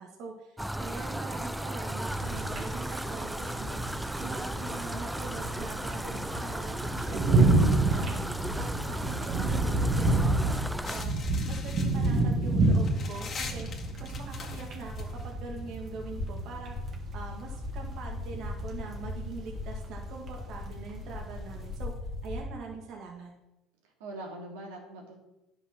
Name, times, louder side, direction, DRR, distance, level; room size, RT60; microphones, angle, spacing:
voice 1, 0.0-3.8 4.2-8.2 8.5-10.6 10.9-16.8 17.1-21.9 22.2-23.3, right 4 dB, 55° right, 0 dB, 1.8 m, -43 dB
sound 1, 0.6-11.0, right 1 dB, 5° right, 0.4 m, -36 dB
sound 2, 2.1-21.8, right 2 dB, 40° right, 1.8 m, -29 dB
sound 3, 10.8-22.4, left 2 dB, 35° left, 2.0 m, -40 dB
voice 2, 24.0-25.2, right 2 dB, 90° right, -1 dB, 2.6 m, -43 dB
10.0 x 5.7 x 6.1 m, 0.93 s
supercardioid pair, 105°, 0 cm